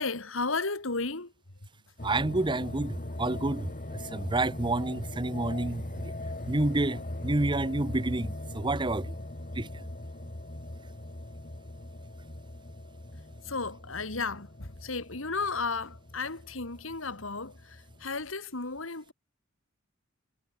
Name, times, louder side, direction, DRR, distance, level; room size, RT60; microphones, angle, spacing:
voice 1, 0.0-1.3 13.4-19.1, left 4 dB, 70° left, 2.7 m, -34 dB
sound 1, 2.0-18.1, left 1 dB, 45° left, 2.4 m, -40 dB
voice 2, 2.0-6.1 6.5-9.1 9.6-9.8, right 2 dB, 25° right, 0.9 m, -29 dB
head